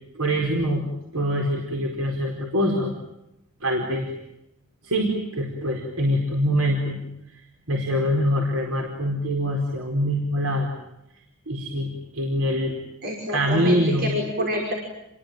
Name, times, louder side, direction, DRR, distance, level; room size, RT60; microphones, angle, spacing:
voice 1, 0.1-0.9 1.1-2.9 3.6-4.1 4.8-7.0 7.3-10.7 11.5-12.7 13.3-14.1, equal, 85° right, 1 dB, 4.7 m, -24 dB
voice 2, 13.0-14.7, equal, 50° right, 1 dB, 5.5 m, -27 dB
29.5 x 22.0 x 9.2 m, 0.87 s
head